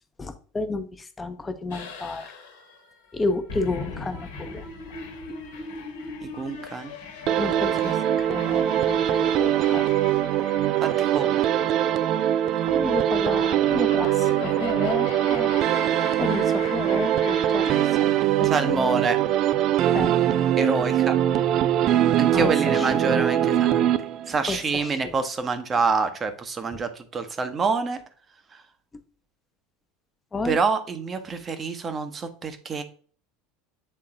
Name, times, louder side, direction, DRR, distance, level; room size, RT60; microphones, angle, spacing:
voice 1, 0.2-2.3 3.1-4.6 7.4-9.8 12.6-15.5 16.2-18.1 18.4-18.9 19.9-20.6 22.3-22.9 24.5-25.2 30.3-30.6, left 3 dB, 20° left, 8 dB, 0.8 m, -31 dB
sound 1, 1.7-17.9, left 4 dB, 70° left, 1.3 m, -39 dB
voice 2, 6.2-6.9 10.8-11.4 18.4-19.2 20.6-21.2 22.2-23.9 24.3-28.0 28.5-28.6 30.4-32.8, right 4 dB, 30° right, 9 dB, 1.0 m, -27 dB
sound 2, 7.3-24.5, right 11 dB, 45° right, 0.4 m, -22 dB
7.6 x 3.8 x 3.7 m, 0.43 s
figure-of-eight pair, 75°, 0 cm